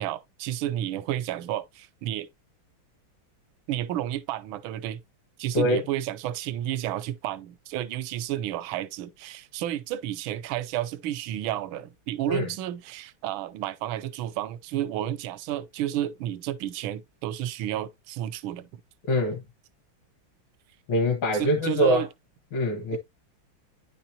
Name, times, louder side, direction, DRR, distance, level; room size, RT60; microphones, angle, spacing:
voice 1, 0.0-2.3 3.7-5.0 5.4-18.8 21.3-22.1, right 12 dB, 80° right, 1.4 m, -31 dB
voice 2, 19.1-19.4 20.9-22.0 22.5-23.0, equal, 75° left, 2.0 m, -23 dB
9.8 x 4.4 x 2.7 m
omnidirectional pair, 2.3 m